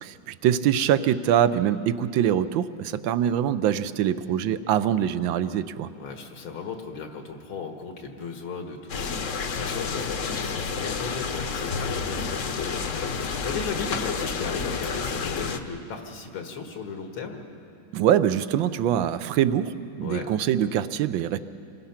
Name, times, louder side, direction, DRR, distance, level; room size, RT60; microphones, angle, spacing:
voice 1, 0.0-5.9 17.9-21.4, right 10 dB, 75° right, 13 dB, 1.4 m, -24 dB
voice 2, 6.0-17.4 20.0-20.3, left 5 dB, 80° left, 3 dB, 2.3 m, -36 dB
sound 1, 8.9-15.6, left 5 dB, 50° left, 1.1 m, -30 dB
27.5 x 21.5 x 5.8 m, 2.5 s
omnidirectional pair, 2.3 m